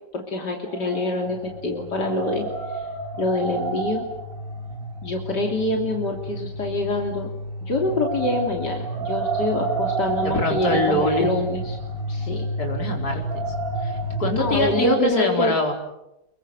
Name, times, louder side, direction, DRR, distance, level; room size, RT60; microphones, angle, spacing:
voice 1, 0.1-2.5 2.7-2.9 3.2-4.1 5.0-7.3 7.6-11.8 12.1-12.5 14.3-15.7, left 2 dB, 85° left, 1 dB, 3.7 m, -25 dB
sound 1, 0.7-1.6 1.9-5.1 7.8-15.0, right 4 dB, 30° right, 6.2 m, -31 dB
sound 2, 1.2-14.7, equal, 85° right, 7.4 m, -32 dB
voice 2, 10.2-11.3 12.6-13.2 13.8-15.7, left 1 dB, 65° left, 1 dB, 5.1 m, -24 dB
29.5 x 23.5 x 7.8 m, 0.91 s
omnidirectional pair, 1.8 m